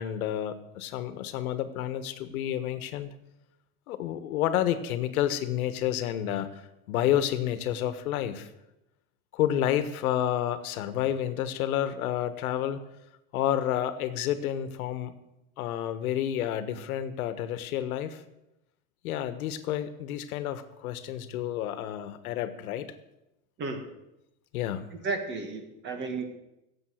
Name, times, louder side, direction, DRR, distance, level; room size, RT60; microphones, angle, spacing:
voice 1, 0.0-3.1 3.9-6.6 6.9-8.5 9.3-12.8 13.3-15.1 15.6-18.2 19.0-22.9 24.5-24.9, left 11 dB, 80° left, 12 dB, 1.4 m, -30 dB
voice 2, 25.0-26.2, right 3 dB, 25° right, 6 dB, 1.7 m, -33 dB
16.5 x 7.6 x 6.4 m, 0.89 s
supercardioid pair, 160°, 43 cm